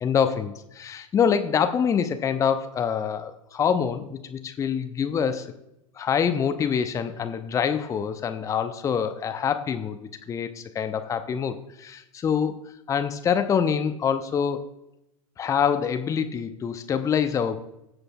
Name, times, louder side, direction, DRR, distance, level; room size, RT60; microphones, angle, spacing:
voice 1, 0.0-5.5 6.0-12.6 12.9-14.6 15.4-17.6, left 7 dB, 15° left, 9 dB, 0.6 m, -25 dB
21.0 x 7.8 x 2.3 m, 0.87 s
figure-of-eight pair, 90°, 18 cm